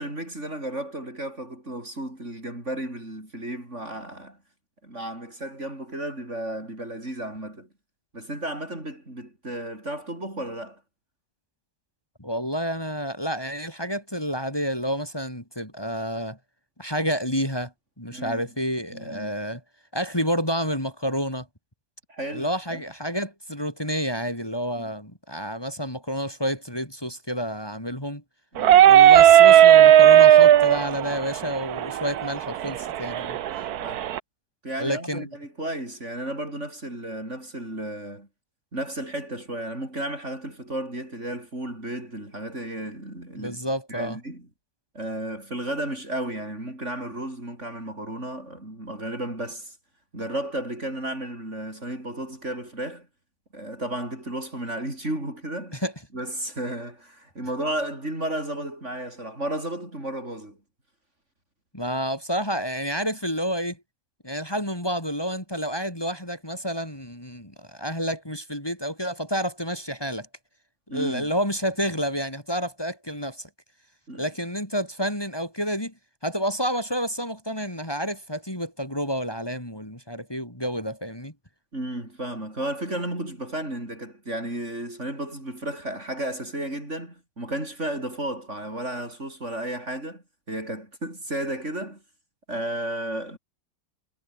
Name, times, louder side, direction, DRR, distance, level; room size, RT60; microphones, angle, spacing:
voice 1, 0.0-4.4 4.8-7.7 8.1-10.8 18.1-18.4 18.9-19.3 22.1-22.8 24.8-24.9 28.5-28.9 33.7-34.0 34.6-38.3 38.7-43.6 43.9-44.5 44.9-49.8 50.1-53.1 53.5-55.8 56.1-60.6 70.9-71.3 74.1-74.3 81.7-92.0 92.5-93.4, right 1 dB, 40° right, 8.2 m, -33 dB
voice 2, 12.2-16.4 16.8-17.7 18.0-19.6 19.9-21.5 22.3-28.2 28.9-33.4 34.8-35.3 43.4-44.2 55.8-55.9 61.7-63.8 64.2-70.3 70.9-73.5 74.2-75.9 76.2-81.3, equal, 15° left, 6.1 m, -29 dB
sound 1, 28.6-34.2, right 11 dB, 70° right, 1.3 m, -15 dB
omnidirectional pair, 1.8 m